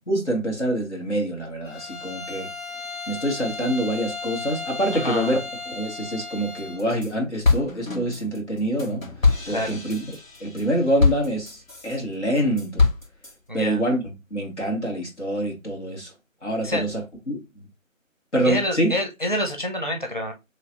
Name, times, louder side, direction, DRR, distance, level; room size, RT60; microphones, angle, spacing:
voice 1, 0.1-2.5 3.1-5.4 5.7-9.0 9.5-12.8 13.5-16.1 16.4-17.0 17.3-17.6 18.3-18.9, right 1 dB, 55° left, 1.9 m, -26 dB
Bowed string instrument, 1.7-6.9, left 3 dB, 40° left, 0.8 m, -35 dB
voice 2, 4.9-5.4 9.5-9.8 13.5-13.8 16.6-16.8 18.4-20.3, left 1 dB, 40° right, 0.7 m, -27 dB
sound 1, 6.6-7.1 7.4-11.9 12.4-13.3, left 4 dB, 75° left, 1.9 m, -24 dB
3.8 x 3.1 x 2.9 m
figure-of-eight pair, 180°, 40 cm